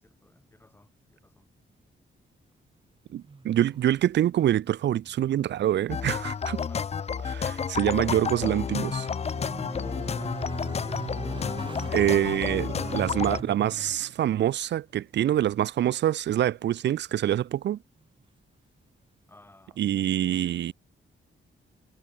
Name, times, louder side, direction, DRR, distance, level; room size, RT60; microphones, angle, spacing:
voice 1, 0.0-1.5 6.6-6.9 9.7-10.9 19.3-19.8 20.4-20.6, left 2 dB, 10° left, 3.2 m, -54 dB
voice 2, 3.1-6.6 7.2-9.1 11.9-17.8 19.8-20.7, right 12 dB, 60° right, 0.4 m, -25 dB
sound 1, 3.2-4.2 4.5-5.3 5.6-5.7 8.1-14.0 16.9-17.0, right 4 dB, 25° right, 1.3 m, -40 dB
sound 2, 5.9-13.4, left 6 dB, 30° left, 0.5 m, -31 dB
sound 3, 11.8-15.1, right 11 dB, 85° right, 1.5 m, -48 dB
wide cardioid pair, 165°, 21 cm